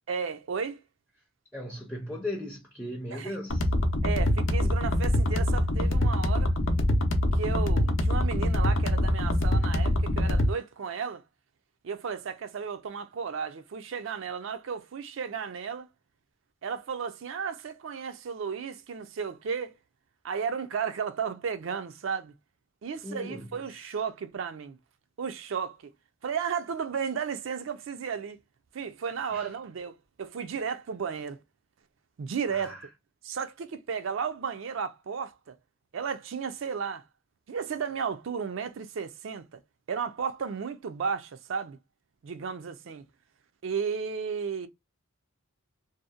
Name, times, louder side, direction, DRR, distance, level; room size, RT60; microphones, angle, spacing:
voice 1, 0.1-0.8 3.1-3.3 4.0-6.5 7.3-11.2 11.8-15.9 16.6-19.8 20.2-22.3 22.8-24.8 25.2-25.9 26.2-28.4 28.7-31.4 32.2-32.8 33.2-35.6 35.9-37.0 37.5-39.4 39.9-41.8 42.2-43.0 43.6-44.7, right 6 dB, 65° right, 0.4 m, -34 dB
voice 2, 1.5-3.7 23.0-23.9 29.3-29.5 32.5-32.9, left 1 dB, 5° left, 0.4 m, -38 dB
sound 1, 3.5-10.5, left 1 dB, 65° left, 0.6 m, -24 dB
2.7 x 2.0 x 2.3 m
head